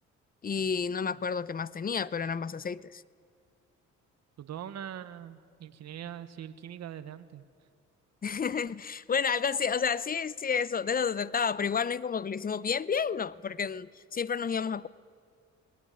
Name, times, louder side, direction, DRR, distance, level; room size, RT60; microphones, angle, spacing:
voice 1, 0.4-3.0 8.2-14.9, left 6 dB, 30° left, 0.6 m, -30 dB
voice 2, 4.4-7.4, right 10 dB, 60° right, 1.1 m, -42 dB
19.0 x 18.5 x 9.8 m
cardioid pair, 90°, 30 cm